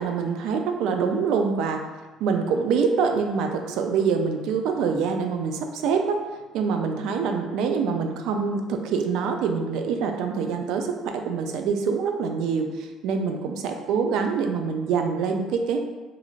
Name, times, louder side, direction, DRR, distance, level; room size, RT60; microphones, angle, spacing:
voice 1, 0.0-1.8 2.2-6.2 6.5-15.8, right 5 dB, 75° right, 5 dB, 0.3 m, -25 dB
3.0 x 2.5 x 2.4 m, 1.2 s
cardioid pair, 120°, 0 cm